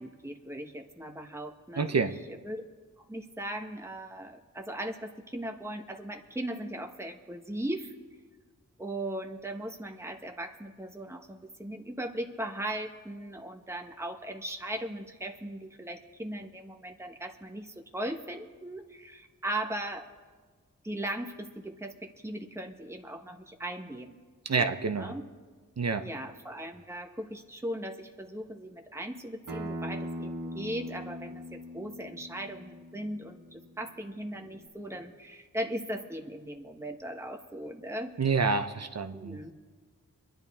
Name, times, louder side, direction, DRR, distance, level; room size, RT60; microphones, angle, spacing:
voice 1, 0.0-2.0 2.3-2.6 3.0-7.9 8.8-20.1 20.8-24.2 24.6-25.3 26.0-38.1 39.1-39.5, right 1 dB, 10° right, 4 dB, 1.2 m, -38 dB
voice 2, 1.8-2.1 24.4-25.1 25.8-26.1 38.2-39.4, right 4 dB, 50° right, 8 dB, 0.9 m, -28 dB
Acoustic guitar, 29.5-34.7, equal, 75° right, 1.7 m, -41 dB
24.0 x 10.5 x 3.6 m, 1.4 s
cardioid pair, 45°, 33 cm